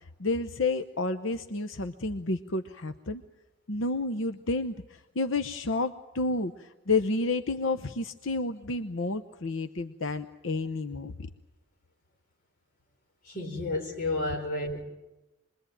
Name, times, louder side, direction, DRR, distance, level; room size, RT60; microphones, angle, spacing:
voice 1, 0.2-3.2 3.7-11.1, left 3 dB, 80° left, 0.9 m, -30 dB
voice 2, 13.2-14.8, left 2 dB, 45° left, 4.4 m, -31 dB
27.0 x 22.0 x 9.2 m
head